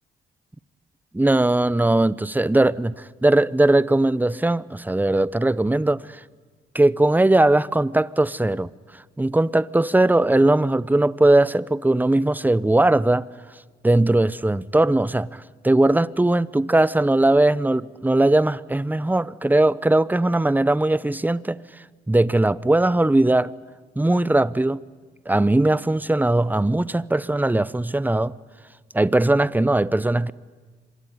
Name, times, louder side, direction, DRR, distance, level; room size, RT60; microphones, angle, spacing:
voice 1, 1.1-6.2 6.7-8.7 9.2-13.3 13.8-21.6 22.1-23.5 24.0-24.8 25.3-28.4 28.9-30.3, right 2 dB, 10° right, 0.9 m, -19 dB
26.5 x 23.0 x 9.5 m
supercardioid pair, 65°, 19 cm